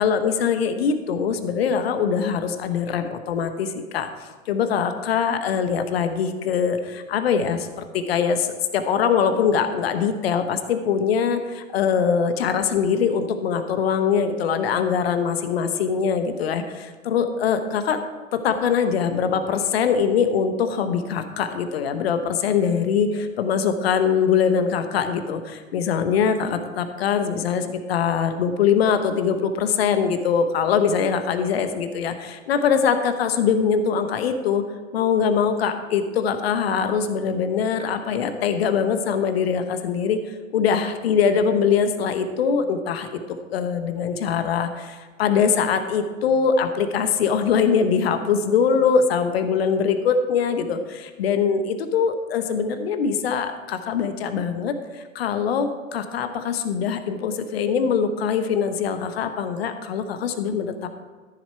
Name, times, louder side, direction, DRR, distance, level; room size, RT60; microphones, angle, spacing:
voice 1, 0.0-4.1 4.5-18.0 18.3-34.6 34.9-40.2 40.5-43.1 43.5-60.9, left 6 dB, 50° left, 9 dB, 1.1 m, -22 dB
13.5 x 7.3 x 4.4 m, 1.4 s
figure-of-eight pair, 105°, 40 cm